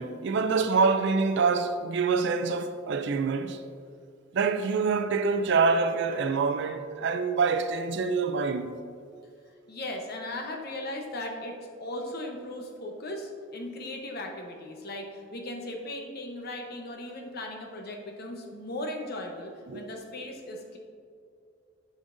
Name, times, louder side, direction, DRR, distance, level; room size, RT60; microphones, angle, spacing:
voice 1, 0.0-3.6 4.3-8.8 19.7-19.9, right 4 dB, 60° right, 0.4 m, -26 dB
voice 2, 9.7-11.5 11.8-20.8, left 1 dB, 50° left, 0.9 m, -37 dB
11.0 x 5.1 x 2.6 m
head